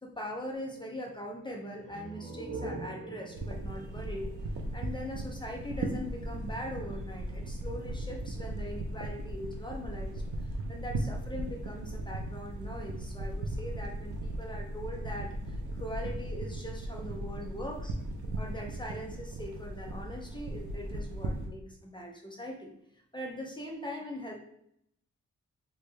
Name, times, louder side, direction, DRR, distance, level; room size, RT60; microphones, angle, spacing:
voice 1, 0.0-18.0 18.4-22.7 23.1-24.3, left 1 dB, 15° left, 0 dB, 0.5 m, -41 dB
sound 1, 1.8-5.3, right 2 dB, 60° right, 1.3 m, -43 dB
sound 2, 3.3-21.5, right 1 dB, 85° right, 0.6 m, -37 dB
3.3 x 2.9 x 3.3 m, 0.74 s
wide cardioid pair, 175°, 30 cm